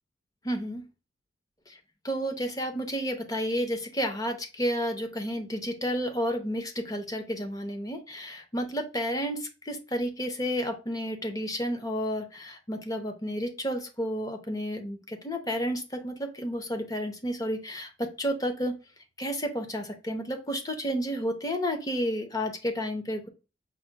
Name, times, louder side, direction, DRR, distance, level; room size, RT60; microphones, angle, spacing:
voice 1, 0.4-0.9 1.7-1.8 2.0-18.8 19.2-23.3, equal, 20° left, 5 dB, 0.7 m, -31 dB
5.0 x 2.2 x 4.4 m, 0.32 s
head